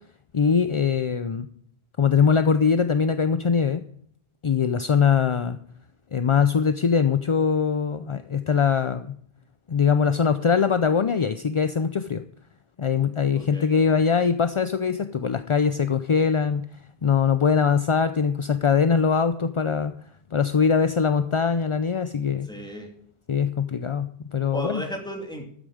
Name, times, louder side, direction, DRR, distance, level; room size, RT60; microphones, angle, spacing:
voice 1, 0.3-1.5 2.0-3.8 4.4-5.6 6.1-9.1 9.7-12.2 12.8-16.7 17.0-19.9 20.3-22.5 23.3-24.8, left 6 dB, 40° left, 11 dB, 0.5 m, -22 dB
voice 2, 13.4-13.7 22.5-22.9 24.5-25.4, equal, 5° left, 1 dB, 2.5 m, -34 dB
13.0 x 9.0 x 5.0 m, 0.63 s
omnidirectional pair, 1.0 m